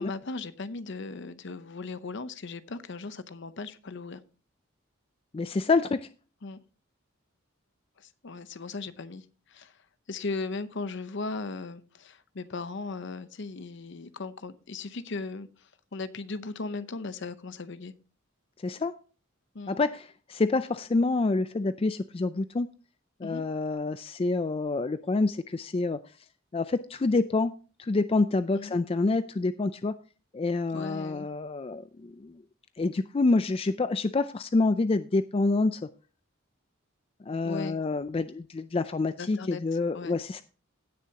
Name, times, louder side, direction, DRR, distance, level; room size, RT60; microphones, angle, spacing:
voice 1, 0.0-4.2 6.4-6.6 8.0-9.7 10.1-17.9 19.5-19.8 23.2-23.4 28.6-28.7 30.7-31.3 37.4-37.8 39.2-40.2, left 3 dB, 60° left, 13 dB, 0.7 m, -37 dB
voice 2, 5.3-6.1 18.6-19.0 19.7-22.7 23.2-26.0 26.5-30.0 30.3-32.4 32.8-35.8 37.3-40.4, left 3 dB, 25° left, 12 dB, 0.4 m, -27 dB
17.0 x 6.7 x 2.8 m, 0.35 s
head